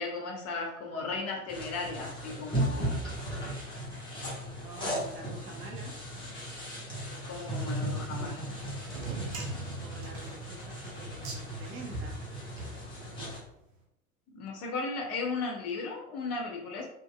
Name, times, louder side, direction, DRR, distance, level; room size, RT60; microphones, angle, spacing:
voice 1, 0.0-3.0 7.2-8.5 14.3-16.9, left 3 dB, 35° left, 1 dB, 0.8 m, -36 dB
sound 1, 1.5-13.4, equal, 10° left, 1.1 m, -36 dB
voice 2, 4.6-6.5 9.8-12.3, right 3 dB, 30° right, 1 dB, 0.7 m, -47 dB
sound 2, 8.8-13.4, right 2 dB, 65° right, 0.8 m, -41 dB
2.8 x 2.7 x 2.3 m, 0.85 s
figure-of-eight pair, 75°, 43 cm